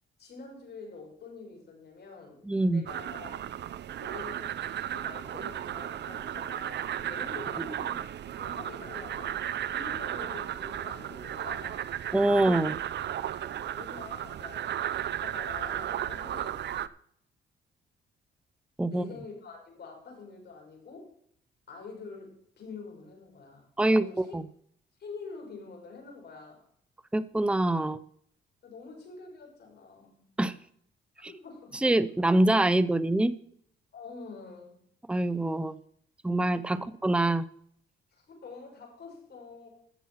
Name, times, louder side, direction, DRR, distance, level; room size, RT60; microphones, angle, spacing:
voice 1, 0.2-2.4 2.7-3.4 4.0-8.1 8.4-11.8 12.3-12.8 13.4-16.6 18.9-21.1 21.7-24.4 25.0-26.6 28.6-30.2 31.3-31.7 33.9-34.8 36.7-36.9 38.1-39.7, left 4 dB, 55° left, 0 dB, 6.5 m, -46 dB
voice 2, 2.5-2.8 12.1-12.7 18.8-19.0 23.8-24.0 24.3-24.4 27.1-28.0 30.4-30.5 31.2-31.3 31.8-33.4 35.1-35.8 36.2-37.4, right 1 dB, 5° right, 15 dB, 0.6 m, -25 dB
sound 1, 2.9-16.9, right 11 dB, 60° right, 0.7 m, -35 dB
14.0 x 7.2 x 5.7 m, 0.66 s
cardioid pair, 90°, 20 cm